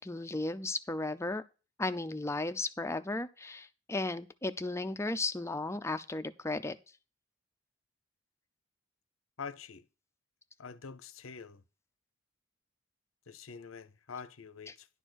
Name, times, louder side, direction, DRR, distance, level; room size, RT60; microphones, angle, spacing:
voice 1, 0.0-1.4 1.8-6.8, left 2 dB, 15° left, 0.6 m, -35 dB
voice 2, 9.4-9.9 10.6-11.6 13.3-15.0, left 5 dB, 80° left, 0.8 m, -46 dB
11.0 x 4.4 x 6.3 m
head